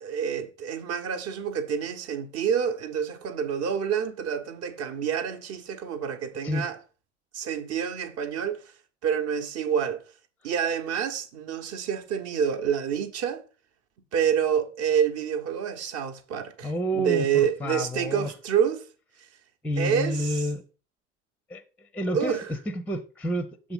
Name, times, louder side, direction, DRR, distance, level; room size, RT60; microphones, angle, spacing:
voice 1, 0.0-6.8 7.3-8.6 9.0-10.0 10.4-13.4 14.1-18.9 19.8-20.5 22.1-22.5, right 8 dB, 45° right, 1.1 m, -28 dB
voice 2, 16.6-18.3 19.6-20.6 21.5-22.4 22.7-23.7, equal, 5° left, 0.5 m, -30 dB
6.9 x 3.7 x 5.6 m
figure-of-eight pair, 70°, 35 cm